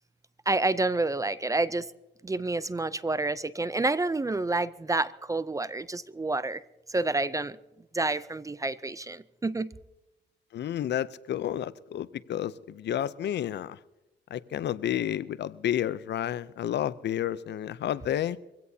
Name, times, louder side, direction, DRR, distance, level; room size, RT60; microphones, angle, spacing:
voice 1, 0.5-1.9 2.2-6.6 6.9-7.6 7.9-9.7, right 2 dB, 15° right, 0.5 m, -28 dB
voice 2, 10.5-13.8 14.3-18.4, left 11 dB, 60° left, 0.6 m, -31 dB
23.5 x 16.5 x 2.8 m
cardioid pair, 90°, 20 cm